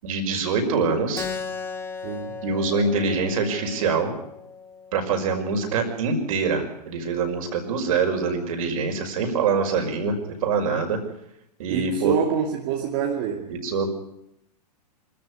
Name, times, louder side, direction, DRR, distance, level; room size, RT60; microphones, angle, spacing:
voice 1, 0.0-1.3 2.4-4.1 4.9-10.2 10.4-11.0 11.6-12.1 13.5-13.9, right 4 dB, 55° right, 4 dB, 5.6 m, -24 dB
Keyboard (musical), 1.2-6.3, left 5 dB, 10° left, 1.6 m, -37 dB
voice 2, 2.0-2.4 11.7-13.5, right 7 dB, 40° right, 1 dB, 2.7 m, -26 dB
25.0 x 14.0 x 9.7 m, 0.78 s
figure-of-eight pair, 110°, 21 cm